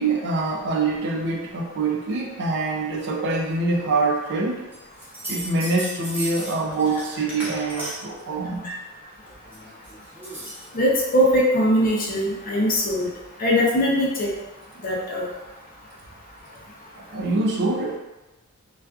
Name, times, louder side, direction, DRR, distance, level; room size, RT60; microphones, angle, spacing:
voice 1, 0.0-4.7 5.3-8.7 17.0-18.0, right 3 dB, 55° right, -1 dB, 0.4 m, -25 dB
sound 1, 4.7-8.2 9.3-10.8, right 1 dB, 10° right, 0.7 m, -35 dB
voice 2, 10.7-13.1 13.4-14.3 14.8-15.3, equal, 40° left, -3 dB, 0.6 m, -21 dB
2.4 x 2.4 x 2.3 m, 1.1 s
head